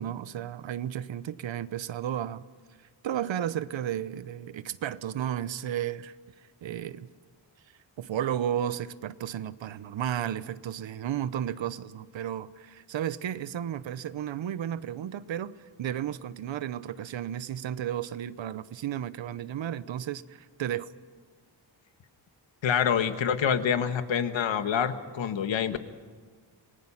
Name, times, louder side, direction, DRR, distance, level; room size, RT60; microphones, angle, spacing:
voice 1, 0.0-2.4 3.0-6.2 6.6-7.1 8.0-20.9, right 10 dB, 85° right, 15 dB, 0.9 m, -33 dB
voice 2, 22.6-25.8, left 8 dB, 85° left, 9 dB, 1.5 m, -26 dB
28.0 x 20.0 x 5.7 m, 1.6 s
wide cardioid pair, 165°, 44 cm